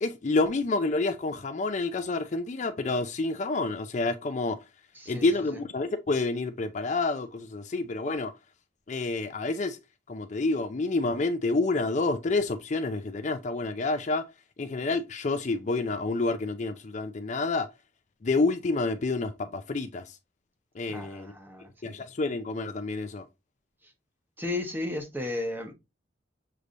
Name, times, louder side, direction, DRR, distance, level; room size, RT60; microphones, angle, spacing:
voice 1, 0.0-4.6 5.1-8.3 8.9-9.8 10.1-14.3 14.6-17.7 18.2-20.2 20.8-21.3 21.8-23.2, left 3 dB, 40° left, 0.4 m, -28 dB
voice 2, 5.0-5.6 20.9-22.0 24.4-25.7, left 2 dB, 10° right, 0.9 m, -34 dB
6.6 x 3.1 x 2.5 m
head